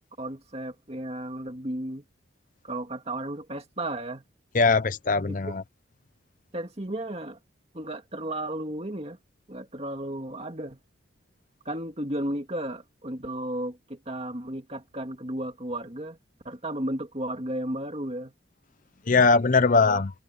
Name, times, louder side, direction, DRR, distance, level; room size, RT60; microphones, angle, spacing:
voice 1, 0.2-2.0 2.6-4.2 5.3-5.6 6.5-7.4 7.7-9.2 9.5-10.8 11.6-16.2 16.4-18.3 19.7-20.0, right 1 dB, 30° right, 2.5 m, -34 dB
voice 2, 4.5-5.6 19.1-20.1, left 4 dB, 40° left, 0.7 m, -21 dB
head